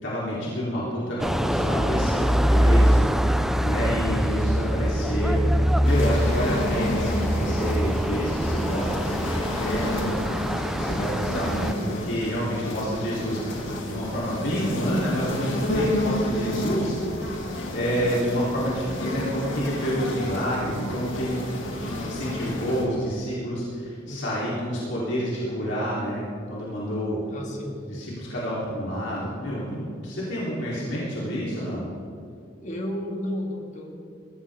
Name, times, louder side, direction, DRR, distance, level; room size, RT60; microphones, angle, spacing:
voice 1, 0.0-2.2 2.5-3.1 3.6-10.1 10.8-17.0 17.7-21.4 21.8-27.2 27.8-31.8, equal, 65° left, -7 dB, 3.7 m, -28 dB
sound 1, 1.2-11.7, equal, ahead, 0.3 m, -23 dB
voice 2, 2.8-3.1 21.9-22.5 24.0-24.3 27.3-27.8 30.7-30.9 31.5-31.7 32.6-33.9, equal, 40° left, 0 dB, 2.3 m, -34 dB
sound 2, 5.8-22.8, left 1 dB, 85° left, 2.6 m, -31 dB
22.0 x 14.5 x 3.7 m, 2.2 s
head